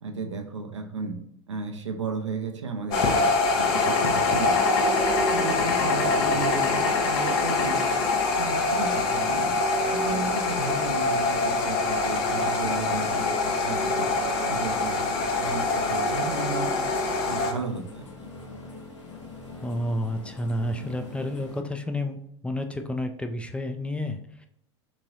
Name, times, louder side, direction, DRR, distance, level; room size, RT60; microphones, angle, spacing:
voice 1, 0.0-1.2 1.5-3.3 3.5-4.9 5.3-9.5 10.0-14.1 14.4-14.9 15.4-16.9 17.3-18.0, right 4 dB, 85° right, 4 dB, 0.5 m, -34 dB
sound 1, 2.9-17.5, left 3 dB, 60° left, 0.8 m, -24 dB
sound 2, 6.0-21.6, left 4 dB, 85° left, 0.9 m, -43 dB
voice 2, 19.6-24.5, left 1 dB, 10° left, 5 dB, 0.3 m, -30 dB
3.6 x 3.0 x 2.6 m, 0.73 s
figure-of-eight pair, 80°, 15 cm